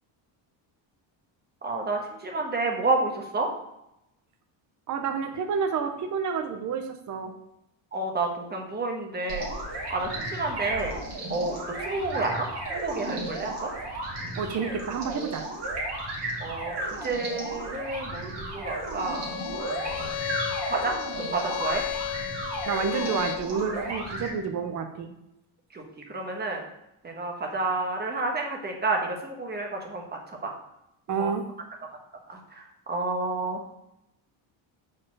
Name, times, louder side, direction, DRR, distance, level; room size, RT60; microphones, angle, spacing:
voice 1, 1.6-3.5 7.9-9.5 9.9-10.9 11.3-13.7 16.4-20.3 20.7-20.9 21.3-21.8 25.7-26.7 27.0-30.5 31.2-31.3 32.3-33.6, right 3 dB, 20° right, 1 dB, 1.2 m, -30 dB
voice 2, 4.9-7.3 14.4-15.5 22.7-25.1 31.1-31.5, right 6 dB, 35° right, 6 dB, 0.7 m, -29 dB
sound 1, 9.3-24.3, right 1 dB, 55° right, 2.1 m, -34 dB
Bowed string instrument, 19.0-23.5, left 12 dB, 80° left, 0.6 m, -34 dB
4.9 x 4.2 x 6.0 m, 0.85 s
cardioid pair, 140°, 50 cm